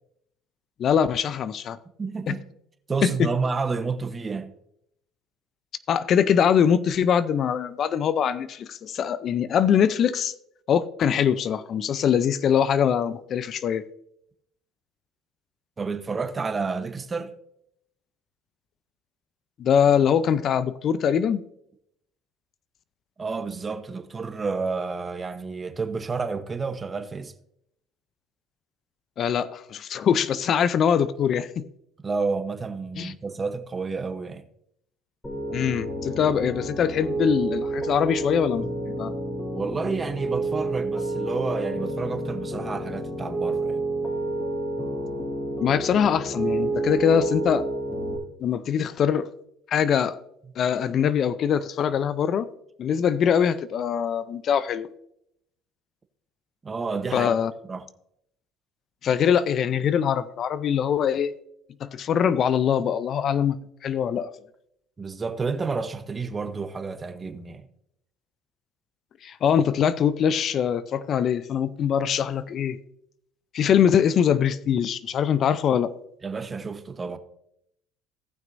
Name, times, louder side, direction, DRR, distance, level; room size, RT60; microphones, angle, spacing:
voice 1, 0.8-1.8 2.3-2.4 3.0-3.3 5.9-10.3 10.7-13.8 19.6-21.4 29.2-31.6 33.0-33.1 35.5-39.1 45.6-47.6 48.4-49.3 49.7-50.2 50.6-52.5 52.8-54.9 57.1-57.5 59.0-61.3 61.8-64.3 69.2-72.8 73.5-75.9, left 8 dB, 50° left, 0.5 m, -23 dB
voice 2, 2.0-2.4 2.9-4.5 15.8-17.3 23.2-27.3 32.0-34.4 39.5-43.8 56.6-57.3 57.7-57.9 65.0-67.7 76.2-77.2, right 4 dB, 25° right, 0.9 m, -30 dB
Piano, 35.2-48.2, right 2 dB, 20° left, 2.6 m, -29 dB
17.5 x 6.1 x 2.6 m
supercardioid pair, 90°, 0 cm